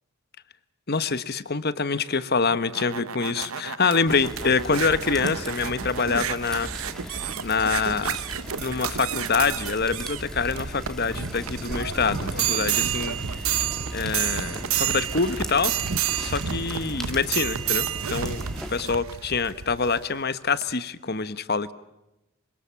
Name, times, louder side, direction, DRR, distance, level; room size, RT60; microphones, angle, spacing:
voice 1, 0.9-6.7 7.1-8.2 8.6-13.4 13.9-15.7 16.2-18.4 18.7-21.7, left 4 dB, 45° left, 14 dB, 1.2 m, -26 dB
sound 1, 2.4-20.1 20.6-20.7, right 9 dB, 80° right, 1.0 m, -30 dB
sound 2, 4.1-18.9, equal, 5° left, 2.0 m, -38 dB
26.5 x 26.0 x 7.5 m, 0.93 s
head